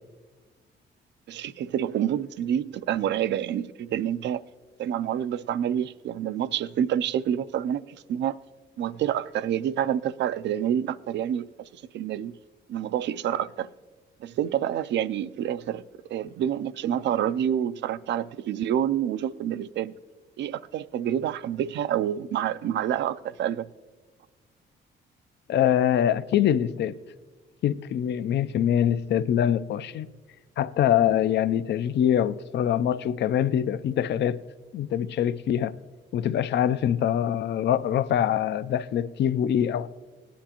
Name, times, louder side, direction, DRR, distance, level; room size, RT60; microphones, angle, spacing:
voice 1, 1.3-4.4 4.8-8.4 8.8-12.3 12.7-13.7 14.2-15.8 16.1-19.9 20.4-23.7, right 10 dB, 65° right, 0.4 m, -28 dB
voice 2, 25.5-26.9 27.6-30.1 30.6-34.4 34.7-35.7 36.1-39.9, left 10 dB, 60° left, 0.4 m, -24 dB
17.5 x 10.0 x 2.9 m
cardioid pair, 90°, 20 cm